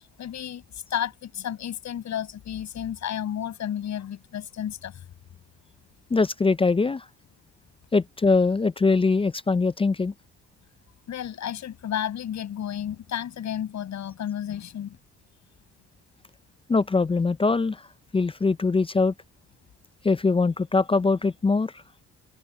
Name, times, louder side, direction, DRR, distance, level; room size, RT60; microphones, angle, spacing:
voice 1, 0.0-5.0 11.1-15.0, left 10 dB, 65° left, 6.3 m, -32 dB
voice 2, 6.1-7.0 7.9-10.1 16.7-17.8 18.1-19.1 20.0-21.7, left 4 dB, 20° left, 0.5 m, -22 dB
open air
cardioid pair, 90°, 30 cm